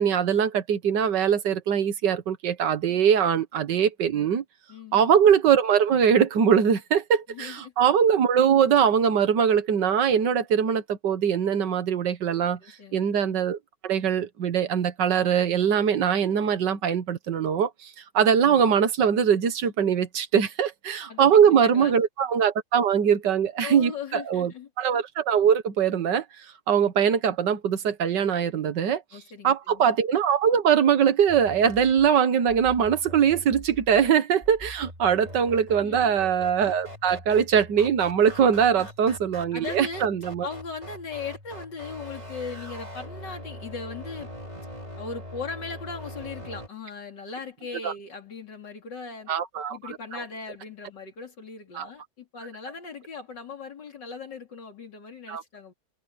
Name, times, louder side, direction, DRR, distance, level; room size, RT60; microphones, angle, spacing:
voice 1, 0.0-4.4 4.9-12.6 12.9-13.6 13.8-24.5 24.8-26.2 26.7-29.0 29.4-40.5 47.8-47.9 49.3-50.2 51.7-51.9 55.3-55.4, right 8 dB, 90° right, 1.9 m, -22 dB
voice 2, 4.7-5.0 7.3-7.7 12.6-13.0 21.1-22.0 23.6-24.7 29.1-29.9 35.8-36.2 39.5-40.1 40.4-44.3 45.0-49.3 49.7-55.7, left 5 dB, 85° left, 3.8 m, -38 dB
sound 1, 31.3-46.7, equal, 25° right, 3.8 m, -42 dB
omnidirectional pair, 1.8 m